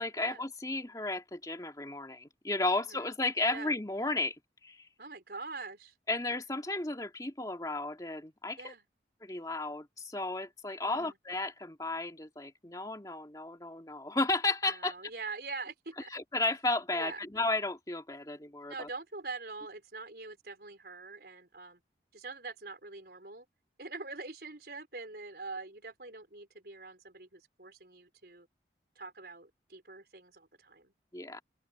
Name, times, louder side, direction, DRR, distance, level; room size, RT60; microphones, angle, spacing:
voice 1, 0.0-4.4 4.6-4.9 6.1-8.7 9.2-14.9 16.1-18.9 31.1-31.4, left 2 dB, 20° left, 2.2 m, -33 dB
voice 2, 2.8-3.1 3.4-3.7 5.0-6.0 8.6-8.9 10.8-11.2 14.6-16.1 16.9-17.2 18.7-21.8 22.1-23.5 23.8-28.5 28.9-30.9, right 3 dB, 60° right, 4.4 m, -44 dB
open air
head